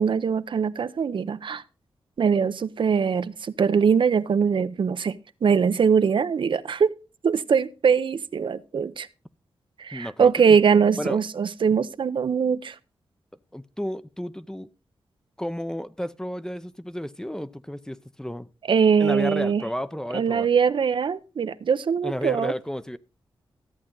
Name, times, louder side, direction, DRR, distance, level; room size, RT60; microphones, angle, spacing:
voice 1, 0.0-1.6 2.2-5.1 5.4-6.9 7.2-9.1 9.8-12.8 18.7-19.6 20.1-22.5, right 6 dB, 60° right, 0.6 m, -22 dB
voice 2, 9.9-10.6 11.0-11.2 13.5-14.7 15.4-18.5 19.0-20.5 22.0-23.0, equal, 5° left, 0.6 m, -32 dB
13.5 x 8.5 x 3.8 m
cardioid pair, 80°, 9 cm